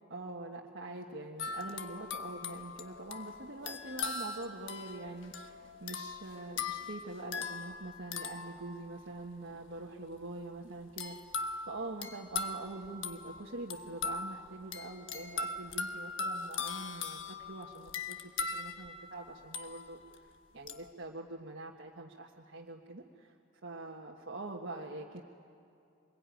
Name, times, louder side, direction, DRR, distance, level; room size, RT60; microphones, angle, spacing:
voice 1, 0.1-11.2 11.7-23.3 23.6-25.2, right 2 dB, 65° right, -2 dB, 1.5 m, -44 dB
sound 1, 1.4-9.3 11.0-20.2 20.7-20.9, left 4 dB, 75° left, 1.3 m, -40 dB
25.5 x 22.0 x 9.3 m, 2.6 s
head